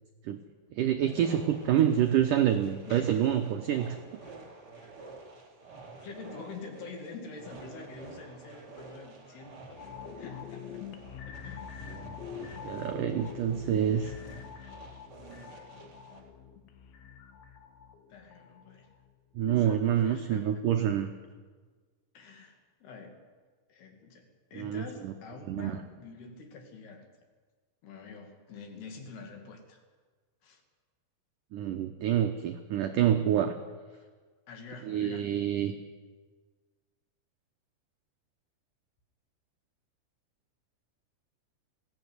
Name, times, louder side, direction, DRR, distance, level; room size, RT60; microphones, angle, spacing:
voice 1, 0.7-4.0 11.9-14.1 19.3-21.1 24.5-25.1 25.5-25.8 31.5-33.5 34.8-35.7, right 10 dB, 85° right, 6 dB, 1.8 m, -27 dB
sound 1, 1.0-16.2, right 3 dB, 25° right, 3.9 m, -50 dB
voice 2, 2.9-3.3 6.0-9.8 10.2-10.8 11.4-11.7 12.3-12.5 18.1-18.9 19.5-20.4 22.1-23.2 23.7-27.1 27.8-29.8 30.4-30.6 34.0-34.1 34.5-35.3, left 4 dB, 65° left, 4 dB, 4.3 m, -46 dB
sound 2, 9.8-19.1 19.5-19.6, left 8 dB, 85° left, 3.9 m, -45 dB
20.5 x 16.0 x 9.6 m, 1.5 s
omnidirectional pair, 5.1 m